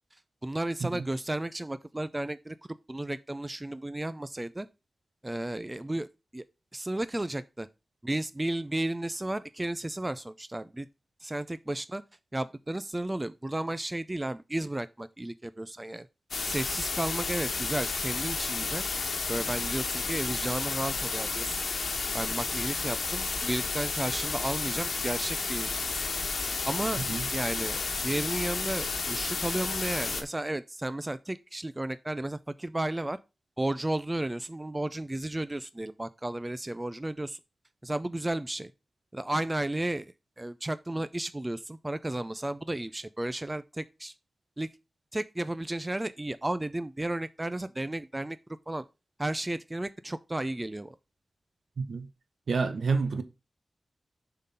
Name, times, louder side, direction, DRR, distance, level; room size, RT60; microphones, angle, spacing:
voice 1, 0.4-2.6 2.9-4.7 5.2-6.1 6.3-6.4 6.7-7.7 8.0-10.9 11.2-12.0 12.3-16.1 16.4-18.8 19.3-21.6 22.1-26.0 26.7-27.0 27.3-33.2 33.6-37.4 37.8-38.7 39.1-44.1 44.6-44.7 45.1-48.4 48.7-48.8 49.2-51.0, right 1 dB, 15° right, 0.3 m, -33 dB
sound 1, 16.3-30.2, left 4 dB, 65° left, 1.2 m, -32 dB
voice 2, 52.5-53.2, right 4 dB, 75° right, 0.9 m, -28 dB
7.2 x 3.8 x 5.5 m
wide cardioid pair, 130°, 0 cm